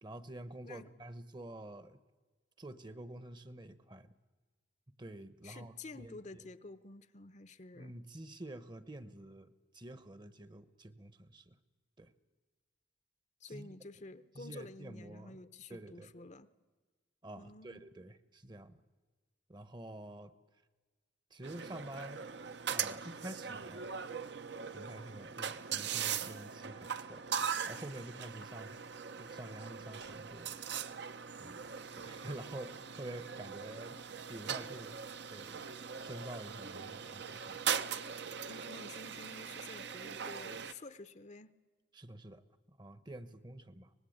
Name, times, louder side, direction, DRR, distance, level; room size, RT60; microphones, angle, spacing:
voice 1, 0.0-2.0 2.6-4.1 4.9-6.4 7.7-11.6 12.0-12.1 13.5-13.7 14.3-15.4 15.7-16.1 17.2-18.8 19.5-20.3 21.3-22.2 22.7-23.9 24.7-28.8 29.2-30.6 31.4-31.7 31.9-34.0 34.3-35.0 35.3-35.7 36.0-37.6 41.9-43.9, right 1 dB, 25° right, 14 dB, 0.9 m, -48 dB
voice 2, 5.4-7.9 13.4-16.5 17.4-17.9 38.5-41.5, left 3 dB, 40° left, 13 dB, 0.7 m, -50 dB
sound 1, 21.4-40.7, right 7 dB, 60° right, 0.8 m, -40 dB
24.5 x 19.5 x 8.7 m, 1.3 s
head